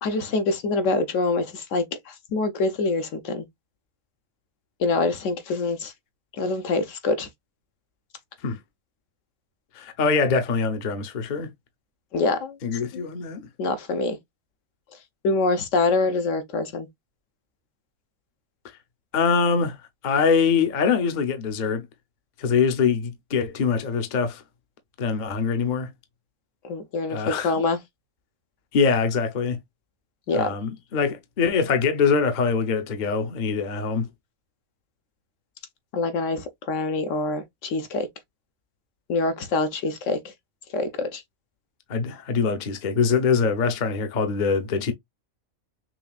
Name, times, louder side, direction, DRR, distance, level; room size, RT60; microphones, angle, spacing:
voice 1, 0.0-3.5 4.8-5.9 6.4-7.3 12.1-12.6 12.9-13.0 13.6-14.2 15.2-16.9 26.6-27.8 30.3-30.5 35.9-38.1 39.1-40.3 40.7-41.2, left 3 dB, 65° left, 1.0 m, -25 dB
voice 2, 9.8-11.5 12.6-13.4 19.1-19.8 20.0-21.9 22.4-24.4 25.0-25.9 27.1-27.5 28.7-29.6 30.3-34.1 41.9-44.9, left 5 dB, 45° left, 0.7 m, -23 dB
5.9 x 2.4 x 2.4 m
omnidirectional pair, 1.4 m